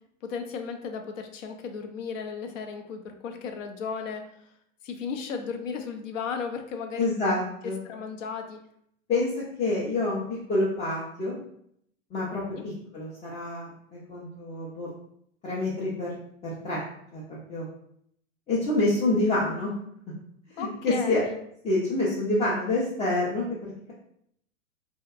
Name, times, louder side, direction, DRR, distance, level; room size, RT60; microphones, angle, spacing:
voice 1, 0.2-4.2 4.8-7.1 7.8-8.6 12.5-12.6 20.6-21.4, left 5 dB, 75° left, 5 dB, 0.6 m, -35 dB
voice 2, 7.0-7.8 9.1-9.3 9.6-10.2 10.5-11.4 12.1-14.9 15.4-16.1 16.4-16.8 17.1-17.7 18.5-19.7 20.5-21.2 21.6-23.9, left 2 dB, 15° left, -7 dB, 0.4 m, -27 dB
2.7 x 2.1 x 2.3 m, 0.71 s
hypercardioid pair, 105°, 39 cm